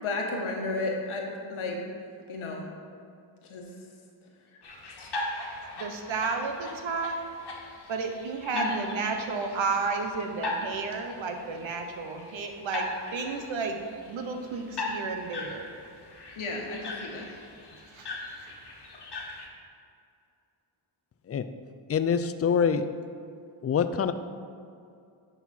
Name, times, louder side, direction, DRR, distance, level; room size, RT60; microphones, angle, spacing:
voice 1, 0.0-1.8 2.3-2.7 3.5-3.6 5.0-5.1 8.5-8.9 16.4-17.3, left 2 dB, 80° left, 1 dB, 1.3 m, -33 dB
sound 1, 4.6-19.5, left 2 dB, 55° left, 1.4 m, -39 dB
voice 2, 5.8-7.2 7.9-13.8 14.1-15.7 17.9-18.1 18.4-18.5, right 4 dB, 70° right, 5 dB, 0.9 m, -32 dB
voice 3, 21.9-22.9 23.6-24.1, left 7 dB, 30° left, 11 dB, 0.4 m, -25 dB
10.0 x 4.1 x 4.3 m, 2.4 s
cardioid pair, 70°, 48 cm